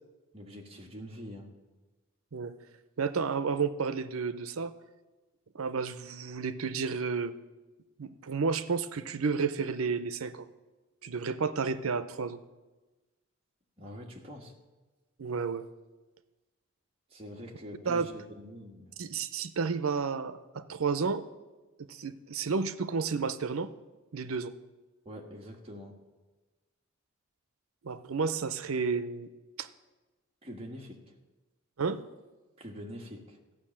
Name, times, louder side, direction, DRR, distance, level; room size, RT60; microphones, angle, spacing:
voice 1, 0.3-1.5 13.8-14.5 17.1-19.0 25.0-26.0 30.4-31.0 32.6-33.4, equal, 25° right, 0 dB, 1.5 m, -45 dB
voice 2, 3.0-4.7 5.5-7.3 8.0-10.5 11.0-12.4 15.2-15.7 17.9-18.1 19.0-21.2 21.9-23.7 24.1-24.5 27.8-29.3 29.6-29.7 31.8-32.0, right 5 dB, 80° right, 13 dB, 0.6 m, -31 dB
13.5 x 6.3 x 8.7 m, 1.2 s
head